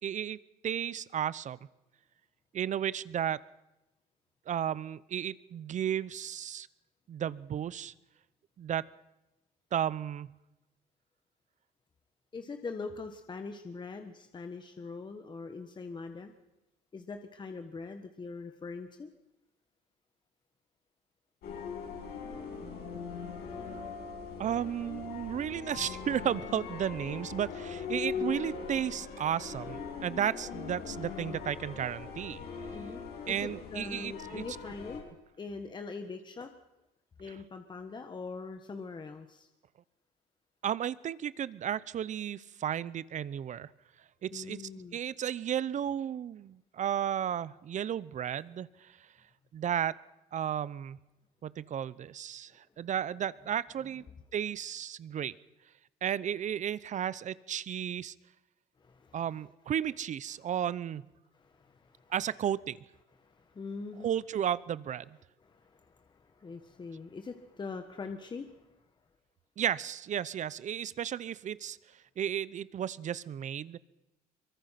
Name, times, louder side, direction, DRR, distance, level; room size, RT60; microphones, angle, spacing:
voice 1, 0.0-0.4 0.6-1.6 2.5-3.4 4.5-6.7 7.1-7.9 8.6-8.9 9.7-10.3 24.4-32.4 33.3-34.4 40.6-43.7 44.2-44.6 44.9-49.0 49.5-50.0 50.3-51.0 51.4-54.0 54.3-55.3 56.0-58.1 59.1-61.0 62.1-62.9 64.0-65.2 69.6-71.8 72.2-73.8, right 9 dB, 45° right, 19 dB, 0.8 m, -33 dB
voice 2, 12.3-16.3 16.9-19.1 28.1-28.4 32.7-35.0 35.4-36.5 37.2-39.5 44.3-45.0 58.8-59.3 61.3-62.1 63.2-64.1 65.4-68.8, left 4 dB, 25° left, 6 dB, 1.5 m, -43 dB
sound 1, 21.4-35.0, left 6 dB, 75° left, 7.2 m, -40 dB
24.0 x 22.5 x 5.9 m, 0.95 s
cardioid pair, 110°, 17 cm